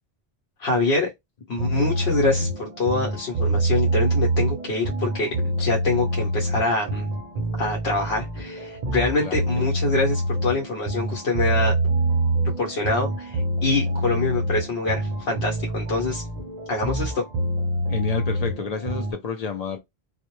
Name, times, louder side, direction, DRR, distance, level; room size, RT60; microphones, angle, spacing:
voice 1, 0.6-1.1 1.5-7.1 7.6-11.7 12.6-16.2 16.7-17.2, left 3 dB, 85° left, 0.9 m, -25 dB
sound 1, 1.6-19.1, right 1 dB, 50° right, 0.6 m, -26 dB
voice 2, 17.9-19.8, left 5 dB, 55° left, 0.4 m, -29 dB
2.1 x 2.0 x 2.9 m
omnidirectional pair, 1.1 m